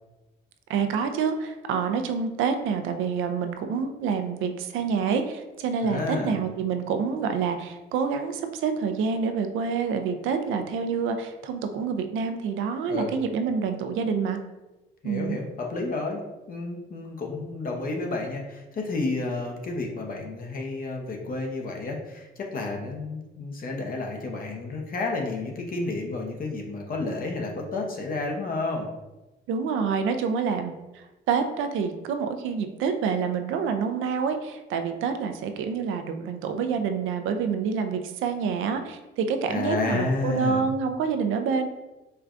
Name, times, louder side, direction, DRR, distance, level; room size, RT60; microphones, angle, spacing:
voice 1, 0.7-14.4 15.0-15.4 29.5-41.7, right 6 dB, 85° right, 7 dB, 0.4 m, -27 dB
voice 2, 5.8-6.4 12.9-13.1 15.0-28.9 39.5-40.6, left 3 dB, 45° left, 1 dB, 0.8 m, -31 dB
4.5 x 2.3 x 2.5 m, 1.0 s
cardioid pair, 90°, 20 cm